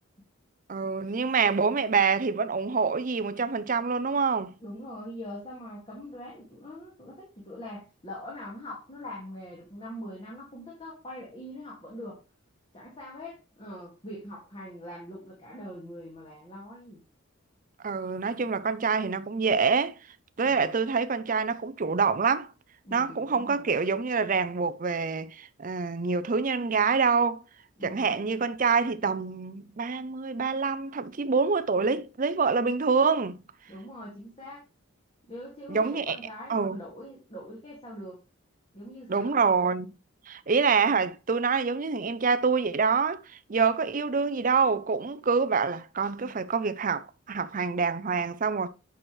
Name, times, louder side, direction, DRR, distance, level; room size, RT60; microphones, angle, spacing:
voice 1, 0.7-4.5 17.8-20.0 20.4-22.5 22.9-27.4 27.8-33.4 35.7-36.2 36.5-36.8 39.1-39.9 40.3-43.2 43.5-48.7, right 5 dB, 40° right, 0.5 m, -26 dB
voice 2, 4.6-12.2 12.7-17.0 20.5-20.8 22.8-23.7 27.8-28.2 33.7-34.6 35.3-38.2 38.7-39.4, left 1 dB, 25° left, 2.1 m, -42 dB
8.8 x 6.1 x 3.2 m
head